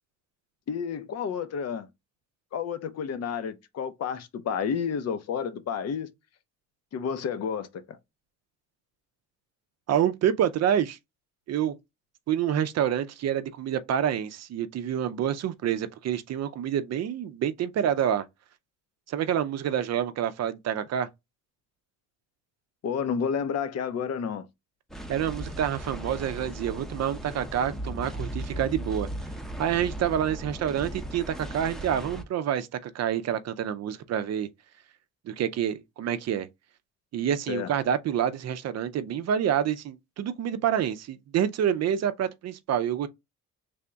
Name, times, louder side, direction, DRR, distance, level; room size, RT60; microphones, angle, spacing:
voice 1, 0.7-1.9 2.5-6.1 6.9-8.0 22.8-24.5 37.5-37.7, left 7 dB, 55° left, 0.7 m, -30 dB
voice 2, 9.9-11.0 11.5-11.7 12.3-18.2 19.1-21.1 25.1-29.1 29.6-34.5 35.3-36.5 37.1-43.1, right 9 dB, 60° right, 0.5 m, -27 dB
sound 1, 24.9-32.2, right 1 dB, ahead, 0.7 m, -37 dB
3.4 x 2.2 x 3.8 m
cardioid pair, 90°, 30 cm